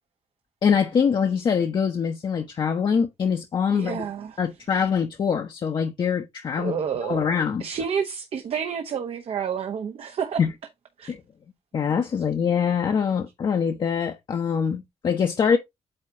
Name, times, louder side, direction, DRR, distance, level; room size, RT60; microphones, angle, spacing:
voice 1, 0.6-4.1 4.4-6.8 7.0-7.7 10.4-10.5 11.1-11.2 11.7-15.6, left 6 dB, 45° left, 0.9 m, -24 dB
voice 2, 3.7-4.4 6.6-7.2 7.6-10.4 11.0-11.1, right 7 dB, 60° right, 1.0 m, -29 dB
8.8 x 3.0 x 4.7 m
wide cardioid pair, 170°, 11 cm